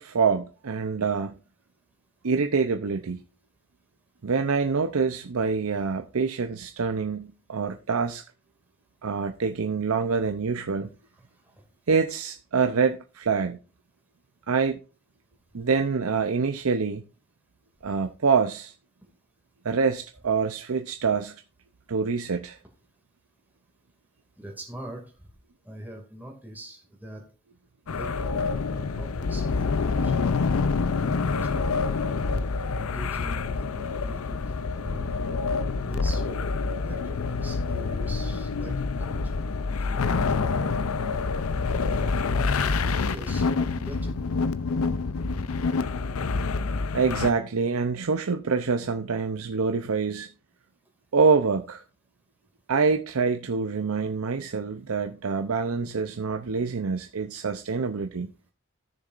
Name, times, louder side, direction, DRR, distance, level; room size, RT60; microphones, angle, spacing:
voice 1, 0.0-1.3 2.2-3.2 4.2-8.2 9.0-10.9 11.9-13.6 14.5-14.8 15.5-17.0 17.8-18.7 19.6-21.4 21.9-22.6 46.9-50.3 51.1-51.8 52.7-58.3, right 5 dB, 90° right, 0.6 m, -26 dB
voice 2, 24.4-25.0 25.6-27.2 27.9-28.4 28.6-30.3 31.0-31.7 32.8-34.4 34.7-35.1 35.9-36.5 36.9-40.8 41.8-44.2, right 1 dB, 10° right, 2.3 m, -43 dB
sound 1, 27.9-47.3, left 4 dB, 90° left, 0.6 m, -27 dB
16.0 x 6.7 x 2.5 m
head